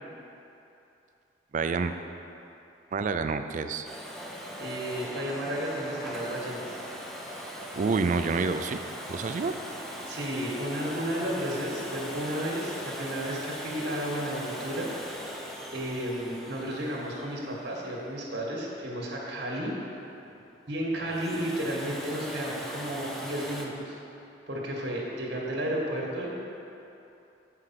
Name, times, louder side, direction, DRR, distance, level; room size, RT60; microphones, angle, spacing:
voice 1, 1.5-2.0 2.9-3.9 7.7-8.8 9.1-9.5, right 4 dB, 45° right, 8 dB, 0.3 m, -28 dB
Domestic sounds home sounds, 3.8-18.6 20.9-23.7, right 1 dB, ahead, 0.6 m, -40 dB
voice 2, 4.6-6.8 10.0-14.9 15.7-19.7 20.7-23.9 24.5-26.3, equal, 60° right, -3 dB, 1.5 m, -33 dB
8.2 x 4.8 x 5.8 m, 2.9 s
head